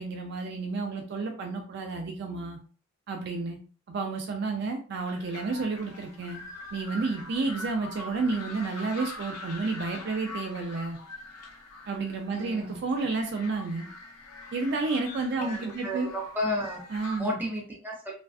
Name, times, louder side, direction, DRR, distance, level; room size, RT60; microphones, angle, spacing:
voice 1, 0.0-2.6 3.1-3.6 3.9-6.4 6.7-11.0 11.9-13.9 14.5-16.1 16.9-17.4, right 3 dB, 50° right, 3 dB, 0.3 m, -31 dB
sound 1, 4.9-17.2, left 2 dB, 90° left, 0.5 m, -44 dB
sound 2, 6.3-9.3, left 2 dB, 25° right, 1.1 m, -49 dB
voice 2, 12.3-12.8 15.4-16.8 17.2-18.2, left 1 dB, 10° right, -3 dB, 0.6 m, -33 dB
2.5 x 2.2 x 2.3 m, 0.39 s
head